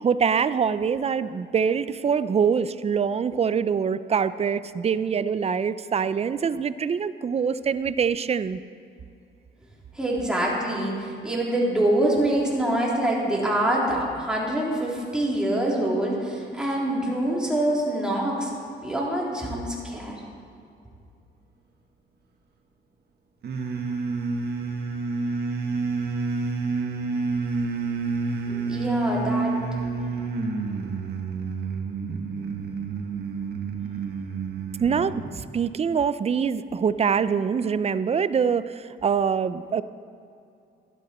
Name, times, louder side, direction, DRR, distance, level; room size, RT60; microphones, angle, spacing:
voice 1, 0.0-8.6 34.8-39.8, right 6 dB, 30° right, 14 dB, 0.5 m, -24 dB
voice 2, 9.9-18.5 18.8-20.2 28.5-29.5, right 1 dB, 5° right, -4 dB, 3.3 m, -25 dB
sound 1, 23.4-35.3, right 4 dB, 55° right, 1.5 m, -29 dB
12.5 x 11.5 x 4.3 m, 2.5 s
cardioid pair, 90°, 20 cm